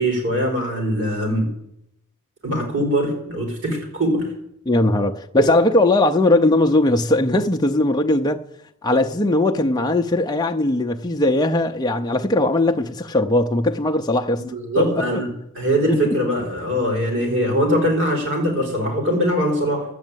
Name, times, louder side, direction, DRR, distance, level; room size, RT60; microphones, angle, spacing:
voice 1, 0.0-1.5 2.4-4.3 5.4-5.5 14.5-15.3 15.5-19.8, equal, 60° right, 4.7 m, -21 dB
voice 2, 4.7-8.4 8.8-14.4 14.8-15.2 15.9-16.0, left 2 dB, 20° left, 0.6 m, -19 dB
12.0 x 8.5 x 9.0 m
head